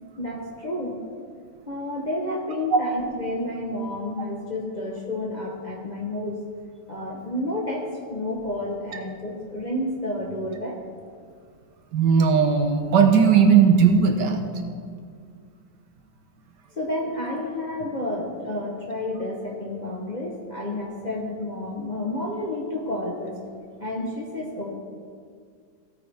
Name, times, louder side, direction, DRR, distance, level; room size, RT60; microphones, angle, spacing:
voice 1, 0.2-1.0 1.7-6.4 6.9-10.8 16.7-23.4 23.8-24.8, left 1 dB, 30° left, -2 dB, 0.9 m, -30 dB
voice 2, 11.9-14.4, right 6 dB, 65° right, 5 dB, 1.4 m, -17 dB
15.5 x 9.2 x 3.5 m, 2.1 s
omnidirectional pair, 2.1 m